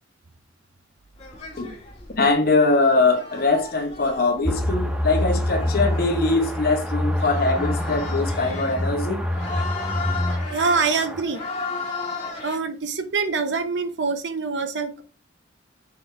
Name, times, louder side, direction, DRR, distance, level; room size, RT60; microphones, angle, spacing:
sound 1, 1.2-12.6, left 4 dB, 35° left, 2.1 m, -36 dB
voice 1, 2.2-9.2, left 3 dB, 50° left, 1.1 m, -22 dB
sound 2, 4.4-11.2, left 1 dB, 5° right, 0.6 m, -26 dB
voice 2, 10.5-11.4 12.4-15.0, right 4 dB, 70° right, 0.7 m, -25 dB
6.3 x 3.7 x 4.6 m
head